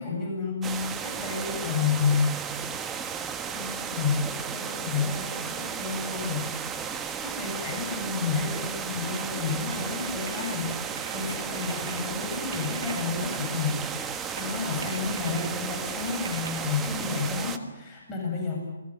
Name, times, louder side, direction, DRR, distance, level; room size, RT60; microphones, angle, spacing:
voice 1, 0.0-2.4 3.5-10.7 11.1-18.6, left 5 dB, 15° left, -3 dB, 7.9 m, -30 dB
sound 1, 0.6-17.6, right 7 dB, 15° right, 1.5 m, -34 dB
sound 2, 9.1-16.8, right 5 dB, 60° right, 3.4 m, -43 dB
28.5 x 20.0 x 9.0 m, 1.1 s
hypercardioid pair, 145°, 0 cm